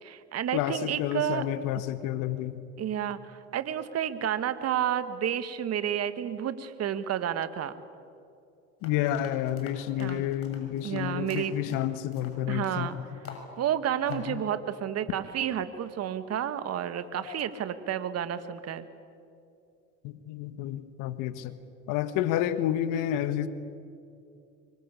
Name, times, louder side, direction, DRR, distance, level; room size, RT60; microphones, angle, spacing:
voice 1, 0.0-1.4 2.8-7.7 10.0-10.2 10.8-11.8 12.5-13.0 13.6-18.9, right 10 dB, 45° right, 11 dB, 1.8 m, -31 dB
voice 2, 0.5-2.6 8.8-13.4 14.1-14.4 17.3-17.4 20.0-21.5 21.9-23.5, left 12 dB, 65° left, 12 dB, 1.5 m, -30 dB
sound 1, 8.8-12.9 13.3-13.5 13.8-14.3, left 5 dB, 40° left, 6.9 m, -47 dB
25.0 x 24.5 x 8.5 m, 2.5 s
hypercardioid pair, 75°, 33 cm